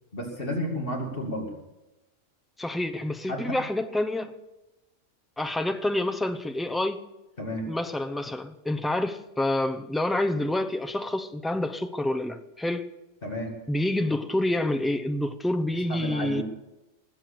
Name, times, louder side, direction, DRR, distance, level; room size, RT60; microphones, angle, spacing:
voice 1, 0.1-1.5 3.3-3.6 7.4-7.7 13.2-13.5 15.9-16.4, equal, 45° left, 2.5 m, -32 dB
voice 2, 2.6-4.4 5.4-7.0 7.7-12.9 13.7-16.4, left 1 dB, ahead, 0.4 m, -28 dB
19.5 x 7.8 x 6.6 m
omnidirectional pair, 1.3 m